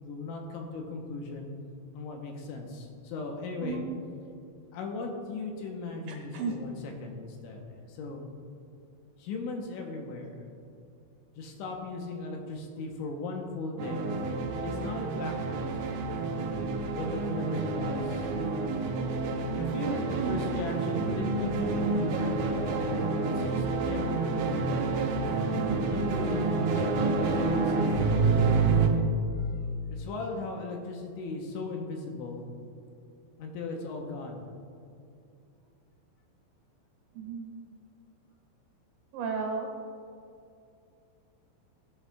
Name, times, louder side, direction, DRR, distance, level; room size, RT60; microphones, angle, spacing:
voice 1, 0.0-1.5 1.9-3.8 4.7-8.3 9.2-10.5 11.4-14.1 14.6-15.9 16.9-18.3 19.5-22.5 23.3-24.9 25.9-28.7 29.9-32.4 33.4-34.5, left 3 dB, 80° left, 2 dB, 3.2 m, -37 dB
sound 1, 13.8-28.9, right 4 dB, 85° right, 3.5 m, -28 dB
voice 2, 20.1-20.4 37.1-37.5 39.1-39.7, right 4 dB, 70° right, 2 dB, 3.3 m, -33 dB
16.0 x 9.7 x 2.4 m, 2.5 s
omnidirectional pair, 5.6 m